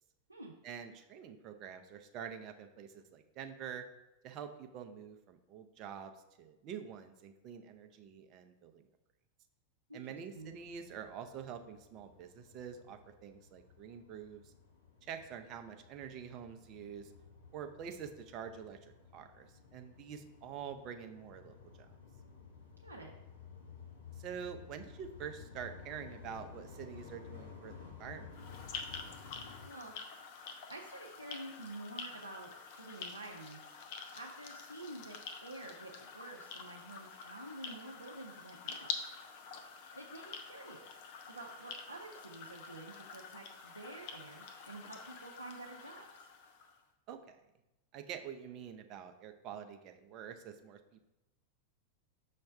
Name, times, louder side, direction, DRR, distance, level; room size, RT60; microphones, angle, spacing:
voice 1, 0.6-3.9 4.2-6.1 6.4-8.9 9.9-14.5 15.0-17.1 17.5-21.9 24.2-28.3 47.1-47.4 47.9-50.8, right 8 dB, 35° right, 7 dB, 0.6 m, -46 dB
voice 2, 9.9-10.5 22.8-23.1 29.6-29.9 30.7-32.5 32.8-33.6 34.1-38.9 39.9-40.8 41.3-46.3, right 2 dB, 85° right, -1 dB, 0.6 m, -49 dB
sound 1, 10.3-29.7, left 6 dB, 65° left, 1.1 m, -54 dB
sound 2, 28.3-46.8, left 5 dB, 50° left, 0.7 m, -47 dB
5.7 x 3.2 x 5.4 m, 0.95 s
figure-of-eight pair, 90°, 0 cm